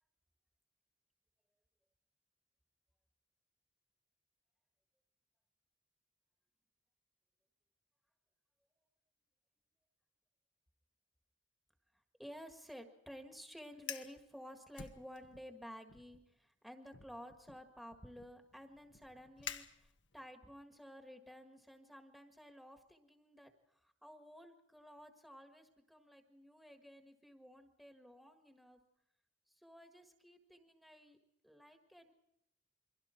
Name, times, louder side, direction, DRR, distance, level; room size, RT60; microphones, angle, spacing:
voice 1, 12.2-28.8 29.5-31.2 31.4-32.1, equal, ahead, 4 dB, 1.7 m, -54 dB
Fire, 13.7-14.2 14.7-15.5 15.9-16.2 16.9-20.3, left 8 dB, 80° left, 1.4 m, -50 dB
29.5 x 23.5 x 4.5 m, 0.79 s
head